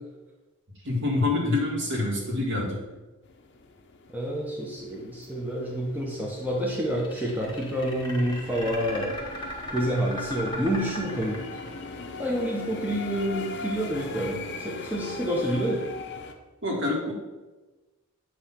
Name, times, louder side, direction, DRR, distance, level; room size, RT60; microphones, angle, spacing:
voice 1, 0.8-2.8 16.6-17.1, left 2 dB, 55° right, -1 dB, 1.7 m, -26 dB
sound 1, 3.2-16.3, left 3 dB, 55° left, 0.7 m, -41 dB
voice 2, 4.1-9.1 9.7-11.4 12.2-15.8, equal, 5° right, -3 dB, 0.8 m, -28 dB
sound 2, 6.9-11.9, left 1 dB, 20° left, 1.2 m, -37 dB
8.2 x 2.9 x 5.7 m, 1.2 s
head